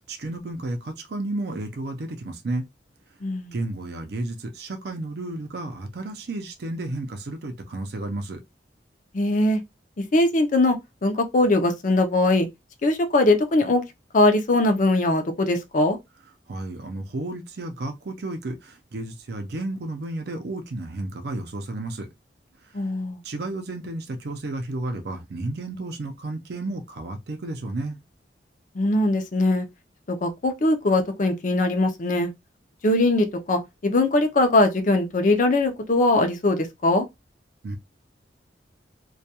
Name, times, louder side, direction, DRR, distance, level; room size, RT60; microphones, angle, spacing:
voice 1, 0.0-2.6 3.5-8.4 16.5-22.1 23.2-28.0 37.6-37.8, right 2 dB, 65° right, 0.5 m, -32 dB
voice 2, 3.2-3.5 9.1-9.6 10.0-12.5 12.8-13.8 14.1-16.0 22.7-23.2 28.8-29.7 30.1-32.3 32.8-37.1, left 2 dB, 45° left, 0.5 m, -21 dB
2.2 x 2.2 x 2.8 m
head